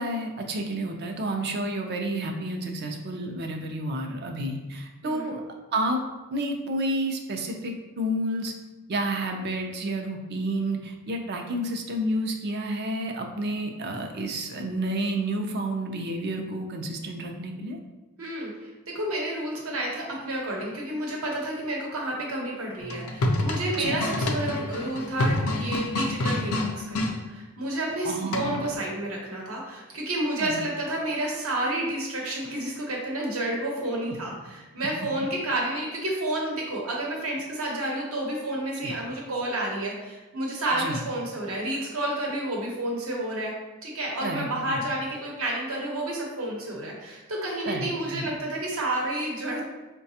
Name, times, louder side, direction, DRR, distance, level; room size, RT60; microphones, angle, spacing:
voice 1, 0.0-5.4 5.7-6.0 6.3-8.5 8.9-17.8 23.7-24.0 28.0-28.7 30.4-30.6 38.8-38.9 40.7-41.0 44.2-44.8 47.7-48.3, right 1 dB, 50° right, 3 dB, 0.4 m, -30 dB
voice 2, 5.0-5.3 18.2-18.5 18.9-43.5 43.8-49.6, right 1 dB, 75° right, -2 dB, 0.9 m, -30 dB
sound 1, 22.8-27.1 28.3-28.7, left 1 dB, 90° left, 0.5 m, -27 dB
4.7 x 2.2 x 2.8 m, 1.2 s
head